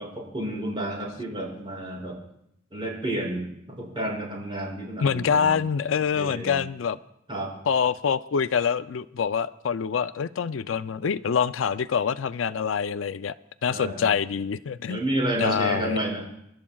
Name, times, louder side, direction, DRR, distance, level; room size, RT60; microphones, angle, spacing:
voice 1, 0.0-2.2 2.7-5.6 6.2-6.6 7.3-7.5 13.7-14.1 14.9-16.2, right 1 dB, 25° right, -3 dB, 5.9 m, -30 dB
voice 2, 5.0-7.0 7.7-13.3 13.6-15.0 15.4-16.0, left 6 dB, 80° left, 14 dB, 0.4 m, -25 dB
28.5 x 12.0 x 2.3 m, 0.78 s
head